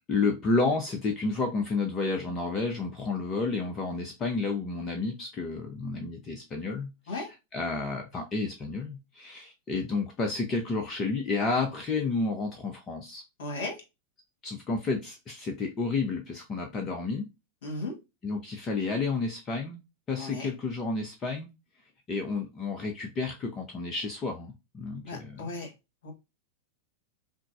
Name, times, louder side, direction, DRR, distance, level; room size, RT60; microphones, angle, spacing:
voice 1, 0.1-7.3 7.5-13.2 14.4-17.3 18.2-19.8 20.1-21.5 22.1-25.5, left 3 dB, 25° left, 0.6 m, -31 dB
voice 2, 13.4-13.8 17.6-17.9 20.2-20.5 25.0-25.7 26.0-26.1, left 2 dB, 55° left, 1.5 m, -35 dB
5.8 x 2.0 x 2.5 m
figure-of-eight pair, 90°, 0 cm